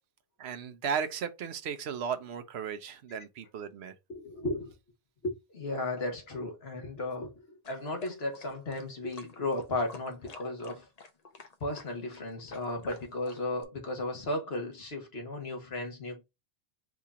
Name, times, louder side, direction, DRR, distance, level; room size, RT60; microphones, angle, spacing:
voice 1, 0.4-3.9, right 7 dB, 75° right, 0.9 m, -35 dB
voice 2, 4.1-4.7 5.2-7.3 7.7-10.9 11.6-16.2, left 2 dB, 65° left, 1.6 m, -35 dB
sound 1, 7.6-13.6, left 3 dB, 40° left, 0.7 m, -50 dB
5.0 x 2.8 x 3.5 m
omnidirectional pair, 1.1 m